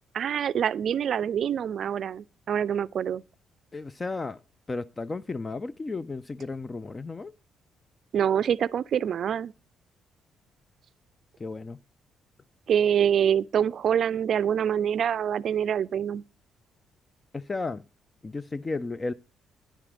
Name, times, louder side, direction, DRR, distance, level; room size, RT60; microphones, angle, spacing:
voice 1, 0.1-3.2 8.1-9.5 12.7-16.2, right 8 dB, 60° right, 0.4 m, -25 dB
voice 2, 3.7-4.4 4.7-7.3 11.4-11.8 17.3-17.9 18.2-19.1, left 3 dB, 25° left, 0.4 m, -33 dB
10.0 x 7.3 x 5.0 m
cardioid pair, 90°, 0 cm